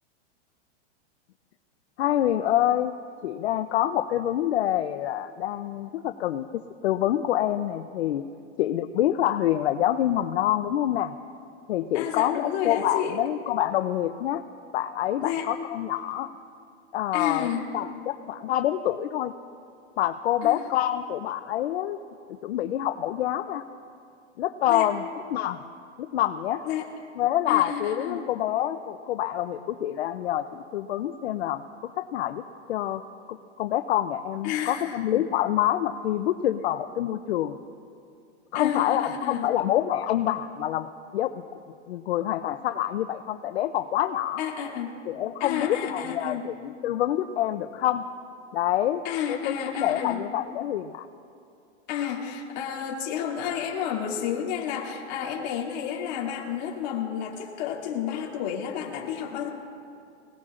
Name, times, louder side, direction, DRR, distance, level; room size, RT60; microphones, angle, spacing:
voice 1, 2.0-2.9 3.2-8.2 8.6-11.1 11.7-14.4 14.7-16.3 16.9-19.3 20.0-22.0 22.4-23.6 24.4-25.0 25.3-25.6 26.0-26.6 27.2-31.6 32.0-32.4 32.7-33.0 33.3-37.6 38.5-40.9 41.1-41.3 41.9-44.4 45.1-48.0 48.5-49.0 49.3-51.1, left 12 dB, 65° left, 9 dB, 0.7 m, -26 dB
voice 2, 11.9-13.2 15.2-15.5 17.1-17.6 20.4-20.7 24.6-24.9 26.6-26.9 27.5-28.2 34.4-35.2 38.5-39.5 44.4-44.9 45.4-46.5 49.0-50.2 51.9-59.5, left 8 dB, 35° left, -3 dB, 2.6 m, -31 dB
25.0 x 17.5 x 2.5 m, 2.5 s
supercardioid pair, 170°, 35 cm